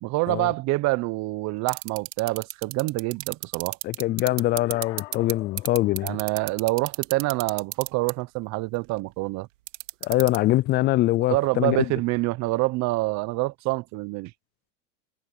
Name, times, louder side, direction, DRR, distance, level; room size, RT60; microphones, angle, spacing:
voice 1, 0.0-3.8 6.0-9.5 11.3-14.3, right 21 dB, 45° right, 1.0 m, -26 dB
sound 1, 1.7-5.3 5.6-8.1 9.7-10.4, right 17 dB, 80° right, 2.5 m, -30 dB
voice 2, 3.8-6.2 10.0-11.8, left 16 dB, 30° left, 0.4 m, -23 dB
sound 2, 4.1-6.4, left 19 dB, 75° left, 6.5 m, -45 dB
supercardioid pair, 120°, 38 cm